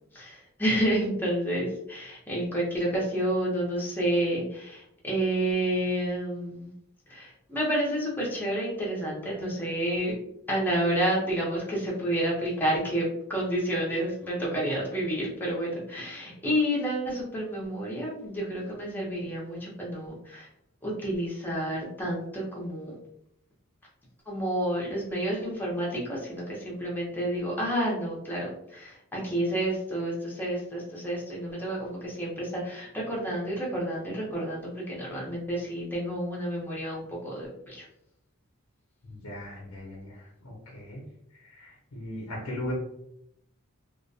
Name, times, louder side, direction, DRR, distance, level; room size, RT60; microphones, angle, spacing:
voice 1, 0.1-6.7 7.1-10.1 10.5-20.5 20.8-22.9 24.3-37.8, right 1 dB, 10° left, -5 dB, 0.6 m, -30 dB
voice 2, 39.1-42.7, left 1 dB, 90° left, -3 dB, 0.6 m, -39 dB
2.2 x 2.1 x 2.6 m, 0.77 s
head